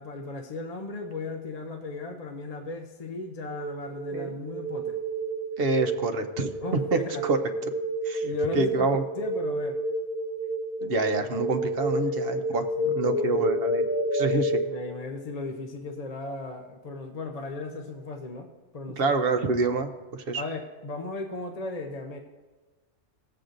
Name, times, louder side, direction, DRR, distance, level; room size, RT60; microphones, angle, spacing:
voice 1, 0.0-5.0 6.6-7.2 8.2-8.9 9.2-9.8 12.0-13.4 14.6-18.5 18.7-19.1 20.3-22.2, left 3 dB, 40° left, 4 dB, 0.6 m, -36 dB
sound 1, 3.4-14.6, right 1 dB, 75° left, 1.9 m, -30 dB
voice 2, 5.6-6.5 6.9-7.4 8.0-8.2 8.5-9.0 10.8-13.9 14.1-14.5 19.0-20.4, right 3 dB, 60° right, 6 dB, 0.9 m, -27 dB
17.5 x 7.7 x 2.6 m, 1.2 s
omnidirectional pair, 1.2 m